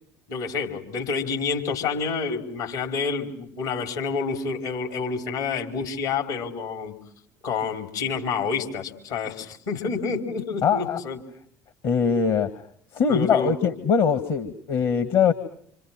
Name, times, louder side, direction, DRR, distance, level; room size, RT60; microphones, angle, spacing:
voice 1, 0.3-6.9 7.4-11.2 13.1-13.5, left 5 dB, 70° left, 4 dB, 4.6 m, -28 dB
voice 2, 10.6-11.0 11.8-12.6 12.9-15.3, left 6 dB, 55° left, 9 dB, 1.9 m, -22 dB
28.5 x 27.0 x 6.1 m, 0.66 s
figure-of-eight pair, 60°, 10 cm